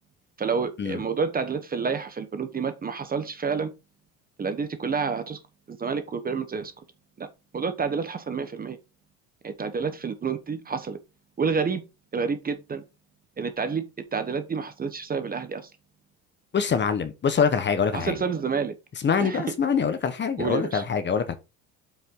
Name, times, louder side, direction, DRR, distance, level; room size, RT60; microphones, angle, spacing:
voice 1, 0.4-3.7 4.4-5.4 5.7-6.7 7.2-7.3 7.5-8.8 9.4-11.0 11.4-11.8 12.1-12.8 13.4-13.8 14.1-15.7 17.9-18.7 19.2-19.4 20.4-20.8, right 5 dB, 20° right, 1.1 m, -29 dB
voice 2, 16.5-18.1 19.0-21.4, left 6 dB, 25° left, 1.2 m, -24 dB
7.6 x 5.8 x 3.8 m
cardioid pair, 125°, 42 cm